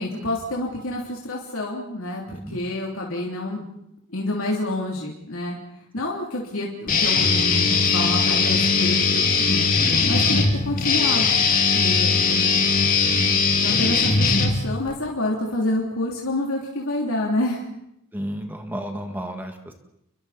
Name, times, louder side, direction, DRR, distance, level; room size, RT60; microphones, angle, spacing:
voice 1, 0.0-3.6 4.1-5.6 5.9-9.7 10.1-11.4 11.7-12.6 13.6-17.6, left 1 dB, 70° left, -2 dB, 3.2 m, -28 dB
voice 2, 2.3-2.6 10.0-10.2 13.2-13.5 18.1-19.7, equal, 10° right, 4 dB, 1.8 m, -33 dB
Guitar, 6.9-14.9, left 4 dB, 40° left, 2.6 m, -20 dB
30.0 x 23.5 x 4.3 m, 0.78 s
head